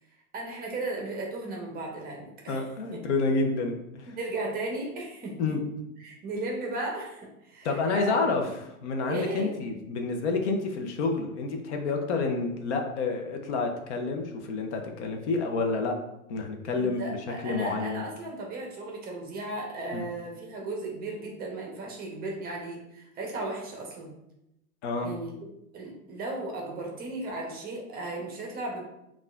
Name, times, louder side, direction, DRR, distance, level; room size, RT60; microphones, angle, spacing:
voice 1, 0.3-2.6 4.1-5.5 6.0-8.4 9.1-9.5 16.7-24.1 25.0-28.8, right 2 dB, 20° right, 0 dB, 0.7 m, -36 dB
voice 2, 2.5-4.1 5.4-5.6 7.6-15.9 16.3-17.2 17.4-18.1 19.9-20.1 24.8-25.1, left 3 dB, 50° left, 3 dB, 0.7 m, -29 dB
5.3 x 2.5 x 2.4 m, 0.85 s
hypercardioid pair, 105°, 44 cm